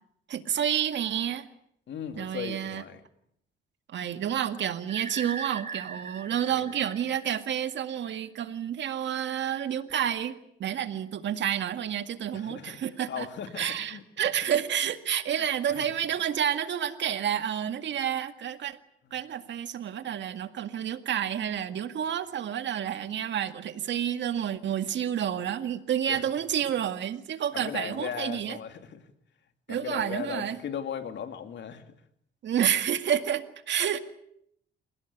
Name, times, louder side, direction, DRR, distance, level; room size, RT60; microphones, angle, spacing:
voice 1, 0.3-1.5 2.2-2.8 3.9-13.3 13.6-18.8 19.1-28.6 29.7-30.6 32.4-34.0, right 9 dB, 65° right, 9 dB, 2.0 m, -29 dB
voice 2, 1.9-3.0 6.5-6.7 12.3-12.8 13.1-14.0 15.3-15.9 19.0-19.1 26.1-26.3 27.5-29.1 29.7-31.9, left 8 dB, 65° left, 8 dB, 2.7 m, -38 dB
sound 1, 4.9-7.7, right 5 dB, 35° right, 1.8 m, -40 dB
28.5 x 17.5 x 9.5 m, 0.72 s
cardioid pair, 90°, 20 cm